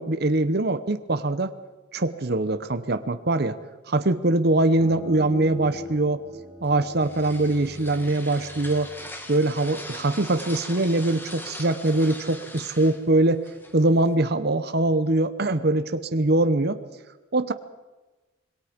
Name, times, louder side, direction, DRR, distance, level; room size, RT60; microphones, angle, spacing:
voice 1, 0.0-1.5 1.9-3.6 3.9-6.2 6.6-8.9 9.3-13.4 13.7-16.8 17.3-17.5, right 2 dB, 55° right, 10 dB, 0.9 m, -23 dB
sound 1, 4.8-10.2, equal, 25° right, 6.2 m, -40 dB
sound 2, 6.6-14.1, left 1 dB, 10° left, 1.9 m, -41 dB
26.0 x 22.5 x 5.3 m, 1.2 s
head